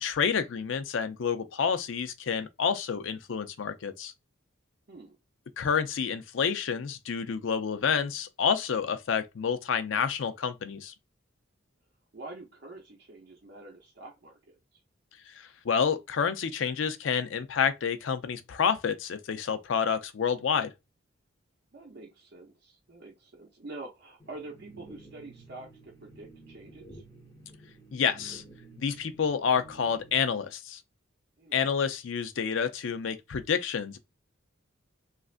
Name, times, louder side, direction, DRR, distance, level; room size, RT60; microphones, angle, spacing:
voice 1, 0.0-4.1 5.6-10.9 15.6-20.7 27.9-28.4 28.8-30.8 31.5-34.0, left 6 dB, 70° left, 0.4 m, -29 dB
voice 2, 12.1-14.8 21.7-27.0 31.4-31.7, right 2 dB, 55° right, 0.6 m, -46 dB
sound 1, 24.2-30.2, right 2 dB, 15° left, 0.8 m, -52 dB
3.2 x 2.5 x 2.4 m
head